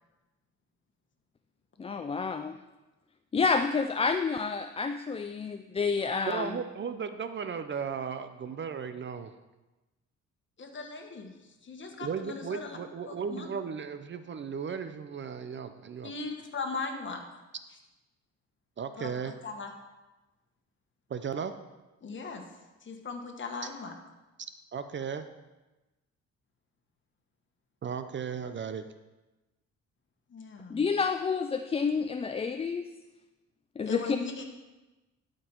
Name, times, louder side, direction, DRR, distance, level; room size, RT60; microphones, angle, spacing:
voice 1, 1.8-2.6 3.3-6.5 30.7-32.9 33.8-34.2, left 5 dB, 20° left, 8 dB, 0.3 m, -29 dB
voice 2, 6.3-9.3 12.0-16.1 18.8-19.3 21.1-21.5 24.7-25.2 27.8-28.9, right 6 dB, 40° right, 10 dB, 0.6 m, -35 dB
voice 3, 10.6-11.3 11.6-12.8 13.1-13.5 16.0-17.2 19.0-19.7 22.0-22.4 22.8-23.9 30.3-30.8 33.8-34.4, left 4 dB, 40° left, 3 dB, 1.6 m, -38 dB
12.5 x 5.2 x 4.5 m, 1.1 s
cardioid pair, 90°, 30 cm